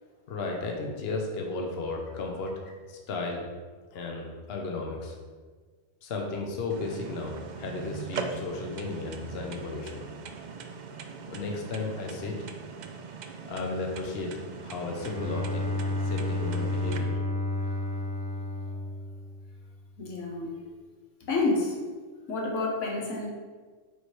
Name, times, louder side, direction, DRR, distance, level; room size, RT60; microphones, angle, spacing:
voice 1, 0.3-2.6 2.9-3.4 3.9-5.1 6.0-10.1 11.3-12.3 13.4-14.3 14.6-15.6 16.0-17.2, left 3 dB, 60° left, 0 dB, 1.0 m, -34 dB
sound 1, 6.7-17.0, right 6 dB, 65° right, 0.4 m, -41 dB
Bowed string instrument, 14.7-19.7, left 2 dB, 35° right, 0.8 m, -31 dB
voice 2, 20.0-20.5 21.3-21.8 22.3-23.3, left 3 dB, 85° left, 0 dB, 1.4 m, -29 dB
6.9 x 3.2 x 4.6 m, 1.5 s
omnidirectional pair, 1.2 m